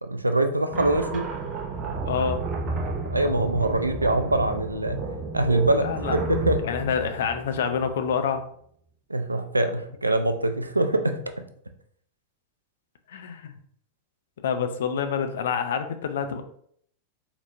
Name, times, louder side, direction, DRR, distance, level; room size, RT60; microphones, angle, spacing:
voice 1, 0.0-1.3 3.1-5.0 5.3-6.6 9.1-11.2, right 1 dB, 85° right, 7 dB, 0.3 m, -24 dB
sound 1, 0.7-8.1, right 3 dB, 30° right, 0.5 m, -31 dB
voice 2, 2.0-2.5 5.8-6.1 6.6-8.5 13.1-13.5 14.4-16.4, left 6 dB, 60° left, 8 dB, 0.4 m, -27 dB
4.0 x 2.9 x 2.4 m, 0.64 s
figure-of-eight pair, 90°, 0 cm